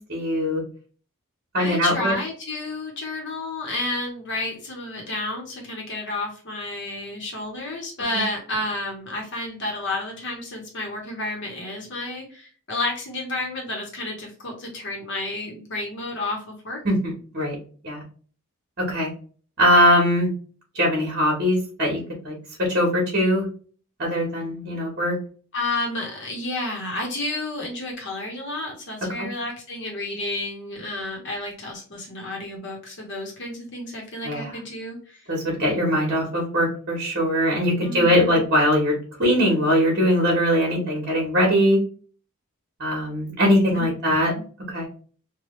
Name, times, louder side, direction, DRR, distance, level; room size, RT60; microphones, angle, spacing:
voice 1, 0.1-0.6 1.5-2.1 16.8-17.5 17.8-18.0 18.9-19.1 19.6-20.3 20.7-22.0 22.2-23.4 24.0-25.1 29.2-29.3 34.2-34.5 35.3-41.8 42.8-44.3 44.7-44.9, equal, 45° right, -1 dB, 1.1 m, -21 dB
voice 2, 1.5-16.8 25.5-35.2 37.8-38.4 43.7-44.4, left 2 dB, 55° left, 0 dB, 0.9 m, -31 dB
3.1 x 2.3 x 3.0 m, 0.42 s
head